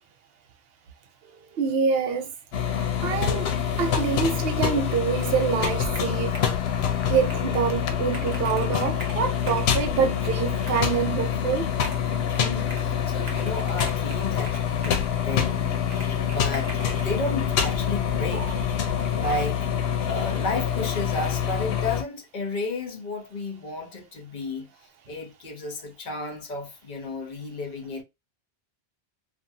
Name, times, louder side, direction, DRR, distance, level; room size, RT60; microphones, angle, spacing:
voice 1, 1.2-2.3 2.8-6.4 7.1-11.7 18.3-18.6 19.0-19.3, right 6 dB, 70° right, 0.8 m, -26 dB
sound 1, 2.5-22.0, left 9 dB, 75° left, 0.8 m, -26 dB
Computer keyboard, 5.2-6.7 7.1-7.5 7.8-7.9 8.1-9.7 10.5-11.0 11.8-12.9 13.3-15.1 15.9-17.1, right 2 dB, 40° right, 0.9 m, -42 dB
voice 2, 12.3-18.5 19.1-19.7 20.1-24.7 25.1-28.0, left 2 dB, 50° left, 0.8 m, -33 dB
sound 2, 15.8-20.7, right 1 dB, 15° left, 0.6 m, -45 dB
2.5 x 2.5 x 2.6 m
omnidirectional pair, 1.1 m